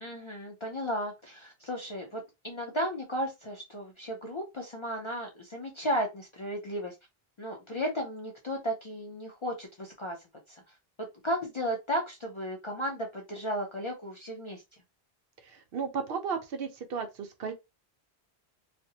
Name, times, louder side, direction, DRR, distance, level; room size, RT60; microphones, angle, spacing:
voice 1, 0.0-6.9 7.4-10.2 10.5-14.6, equal, 45° left, 0.4 m, -34 dB
voice 2, 15.4-17.5, right 6 dB, 70° right, 0.8 m, -34 dB
2.5 x 2.1 x 2.7 m
omnidirectional pair, 1.0 m